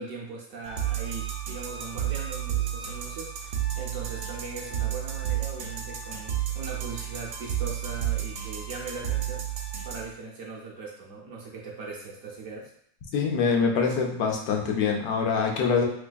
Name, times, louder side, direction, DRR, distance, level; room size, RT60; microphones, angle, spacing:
voice 1, 0.0-9.4 9.8-12.7, right 4 dB, 65° right, -2 dB, 0.9 m, -40 dB
sound 1, 0.6-10.1, right 11 dB, 80° right, 1.2 m, -31 dB
voice 2, 13.1-15.8, left 5 dB, 90° left, 1 dB, 1.3 m, -24 dB
3.4 x 3.3 x 2.2 m, 0.66 s
omnidirectional pair, 1.7 m